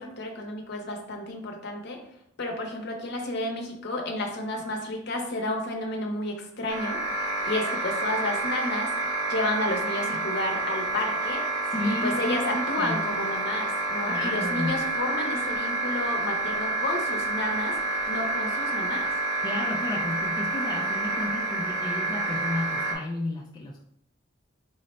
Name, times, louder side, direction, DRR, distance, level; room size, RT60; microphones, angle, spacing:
voice 1, 0.0-2.0 2.4-7.0 7.4-11.5 11.8-17.8 18.1-19.1, left 1 dB, 55° left, 2 dB, 0.7 m, -31 dB
sound 1, 6.7-22.9, right 2 dB, 80° right, 0.9 m, -29 dB
voice 2, 11.7-13.1 14.1-14.8 19.4-23.8, left 2 dB, 20° left, -2 dB, 0.3 m, -32 dB
3.8 x 2.1 x 4.1 m, 0.71 s
head